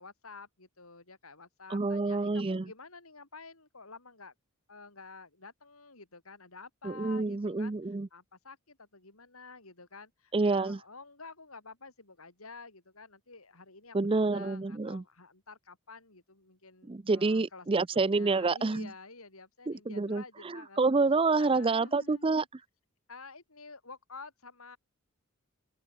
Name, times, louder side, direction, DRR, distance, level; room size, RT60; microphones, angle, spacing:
voice 1, 0.0-4.3 4.7-7.7 8.1-17.8 18.1-20.8 21.3-22.5 23.1-24.8, left 4 dB, 85° left, 6.5 m, -50 dB
voice 2, 1.7-2.6 6.8-8.1 10.3-10.8 13.9-15.0 16.9-18.9 19.7-22.4, right 3 dB, 25° right, 0.5 m, -28 dB
open air
head